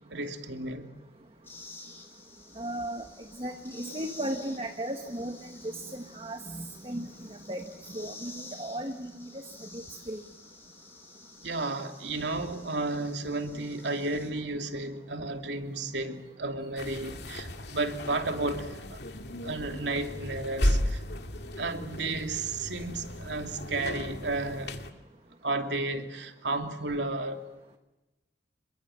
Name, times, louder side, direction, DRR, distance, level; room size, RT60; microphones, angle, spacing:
voice 1, 0.1-0.9 11.4-19.0 19.4-21.0 21.6-24.8 25.4-27.4, right 2 dB, 80° right, 5 dB, 2.8 m, -33 dB
sound 1, 1.4-14.3, left 3 dB, 15° left, 4.9 m, -50 dB
voice 2, 2.6-3.1 3.4-7.6 7.9-9.3 9.6-10.2, right 1 dB, 30° right, 5 dB, 1.5 m, -36 dB
sound 2, 16.8-24.9, left 1 dB, 70° left, 2.3 m, -34 dB
27.0 x 22.5 x 7.7 m, 1.0 s
head